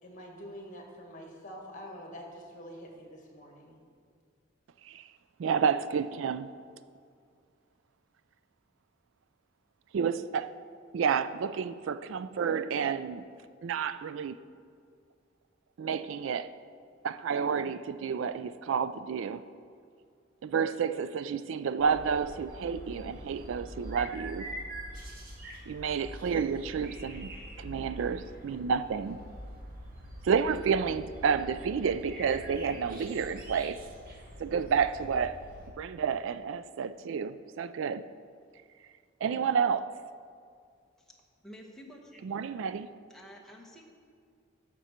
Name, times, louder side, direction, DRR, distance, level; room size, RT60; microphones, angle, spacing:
voice 1, 0.0-3.8, equal, 40° left, 1.8 m, -46 dB
voice 2, 5.4-6.5 9.9-10.5 10.9-13.2 13.6-14.3 15.8-16.5 17.0-19.4 20.4-24.5 25.7-27.3 27.6-29.2 30.2-33.8 34.4-35.4 35.8-38.0 39.2-39.9 42.2-42.9, right 6 dB, 70° right, 0.3 m, -30 dB
sound 1, 21.8-35.7, equal, 50° right, 1.6 m, -45 dB
voice 3, 41.4-42.2 43.1-43.8, equal, ahead, 1.1 m, -50 dB
12.0 x 6.8 x 4.4 m
head